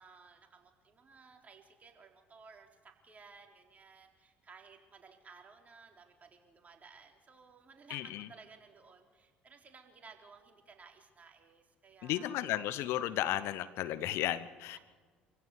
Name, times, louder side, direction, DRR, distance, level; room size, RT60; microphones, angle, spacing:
voice 1, 0.0-12.3, right 5 dB, 30° right, 2 dB, 4.1 m, -57 dB
voice 2, 7.9-8.3 12.0-14.8, left 13 dB, 60° left, 15 dB, 1.0 m, -34 dB
27.0 x 15.5 x 8.1 m, 1.5 s
hypercardioid pair, 60°, 5 cm